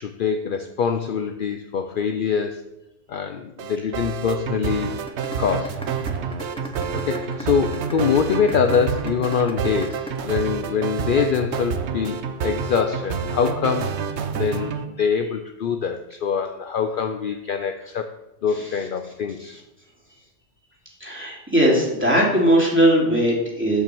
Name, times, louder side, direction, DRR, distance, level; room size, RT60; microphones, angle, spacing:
voice 1, 0.0-2.6 3.1-4.9 5.4-5.8 6.9-13.9 14.3-18.1 18.4-19.6, left 6 dB, 55° left, 7 dB, 0.7 m, -24 dB
sound 1, 3.6-14.8, right 6 dB, 75° right, 1.1 m, -28 dB
sound 2, 5.1-11.1, left 1 dB, 5° left, 0.8 m, -36 dB
voice 2, 21.0-23.8, right 1 dB, 10° right, -4 dB, 2.7 m, -19 dB
8.3 x 5.7 x 7.0 m, 0.94 s
omnidirectional pair, 1.1 m